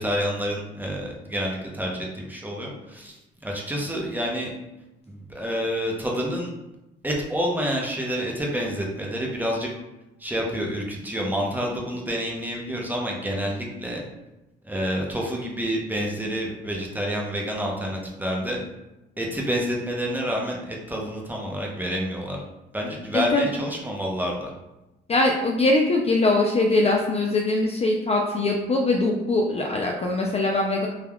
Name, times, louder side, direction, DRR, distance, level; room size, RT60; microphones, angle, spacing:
voice 1, 0.0-4.5 5.1-6.5 7.0-9.7 10.2-14.0 14.6-18.6 19.2-22.4 22.7-24.5, equal, 10° right, -1 dB, 0.6 m, -28 dB
voice 2, 23.1-23.5 25.1-30.9, left 2 dB, 30° left, 0 dB, 0.4 m, -22 dB
3.4 x 2.2 x 2.2 m, 0.97 s
cardioid pair, 90°, 20 cm